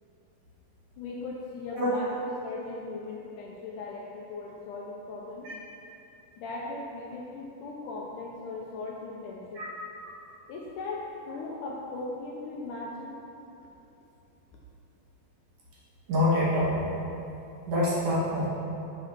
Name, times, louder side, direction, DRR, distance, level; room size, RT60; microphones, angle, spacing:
voice 1, 1.0-5.5 6.4-9.6 10.5-13.2, left 3 dB, 75° left, -3 dB, 2.0 m, -38 dB
voice 2, 16.1-16.9 17.7-18.5, left 1 dB, 60° right, -7 dB, 3.2 m, -25 dB
8.9 x 5.6 x 6.2 m, 2.8 s
omnidirectional pair, 4.3 m